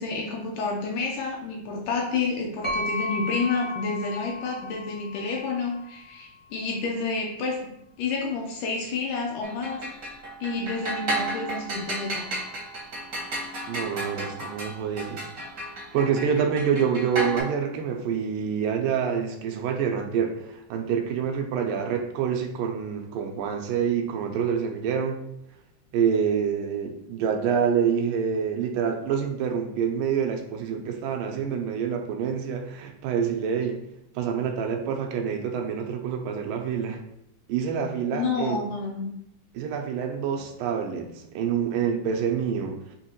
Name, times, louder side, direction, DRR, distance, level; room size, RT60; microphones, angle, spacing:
voice 1, 0.0-7.6 8.0-9.8 10.4-12.3 38.1-39.1, left 4 dB, 75° left, 0 dB, 2.0 m, -29 dB
sound 1, 2.6-6.4, left 2 dB, 35° left, 0.4 m, -34 dB
sound 2, 9.4-17.4, right 1 dB, 60° right, 0.9 m, -33 dB
voice 2, 13.7-15.2 15.9-25.2 25.9-33.8 34.2-37.0 37.5-38.6 39.5-43.0, right 7 dB, 80° right, 3 dB, 2.2 m, -27 dB
6.2 x 2.9 x 2.9 m, 0.78 s
omnidirectional pair, 3.9 m